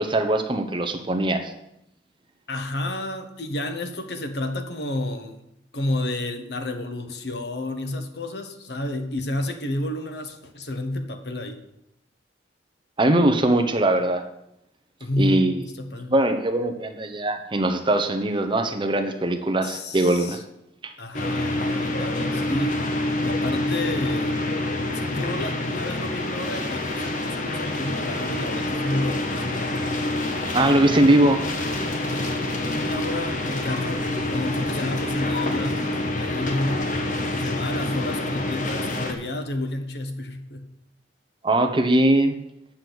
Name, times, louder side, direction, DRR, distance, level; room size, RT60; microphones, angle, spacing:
voice 1, 0.0-1.5 13.0-14.2 15.2-15.6 16.1-20.4 20.8-20.9 30.5-31.4 41.4-42.4, right 1 dB, 30° right, 6 dB, 0.9 m, -21 dB
voice 2, 2.5-5.4 5.7-11.6 15.0-16.1 19.6-20.4 21.0-22.8 23.2-24.4 24.9-29.7 32.0-34.0 34.3-36.9 37.3-40.7, left 1 dB, 65° left, 7 dB, 1.2 m, -30 dB
sound 1, 21.1-39.1, left 2 dB, 45° left, 1.3 m, -27 dB
8.8 x 6.2 x 8.0 m, 0.81 s
head